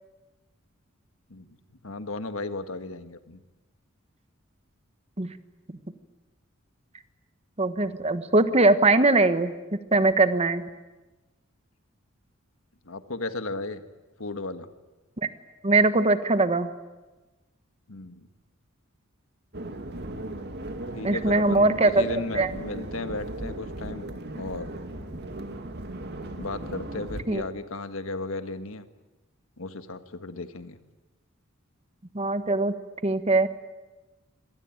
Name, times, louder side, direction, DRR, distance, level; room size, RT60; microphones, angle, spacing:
voice 1, 1.8-3.4 12.8-13.8 14.2-14.7 17.9-18.3 20.9-24.1 24.3-24.7 26.4-28.9 29.6-30.8, left 2 dB, 75° left, 10 dB, 1.5 m, -35 dB
voice 2, 7.6-9.5 9.9-10.6 15.6-16.7 21.0-22.0 22.3-22.5 27.3-27.4 32.1-32.7 33.0-33.5, right 2 dB, 30° right, 11 dB, 1.3 m, -21 dB
sound 1, 19.5-27.2, right 1 dB, 55° right, 2.2 m, -37 dB
25.5 x 18.5 x 9.1 m, 1.1 s
head